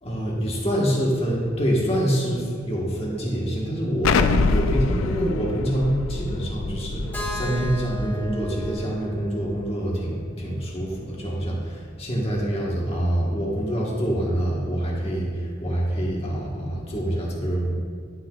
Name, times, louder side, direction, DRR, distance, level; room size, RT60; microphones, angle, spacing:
voice 1, 0.0-17.7, right 1 dB, 30° left, -4 dB, 1.6 m, -26 dB
Explosion, 4.0-8.7, left 4 dB, 75° left, 0.4 m, -25 dB
Keyboard (musical), 7.1-11.0, left 1 dB, 10° left, 1.5 m, -37 dB
11.5 x 6.1 x 2.5 m, 2.1 s
head